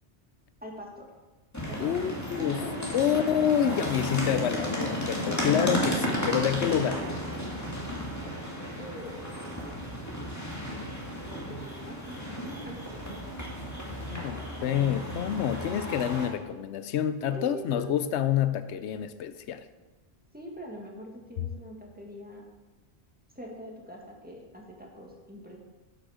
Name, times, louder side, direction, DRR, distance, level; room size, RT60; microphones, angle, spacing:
voice 1, 0.6-1.1 1.7-3.0 8.8-9.4 9.7-9.9 11.2-12.8 13.1-13.2 13.7-14.2 17.3-17.9 20.3-22.4 23.3-25.6, equal, 10° right, -1 dB, 1.7 m, -43 dB
sound 1, 1.5-16.3, equal, 15° left, 1.8 m, -33 dB
voice 2, 1.8-2.6 2.9-7.1 14.0-19.7, left 9 dB, 90° left, 12 dB, 0.9 m, -28 dB
12.0 x 6.4 x 4.9 m, 1.2 s
omnidirectional pair, 1.1 m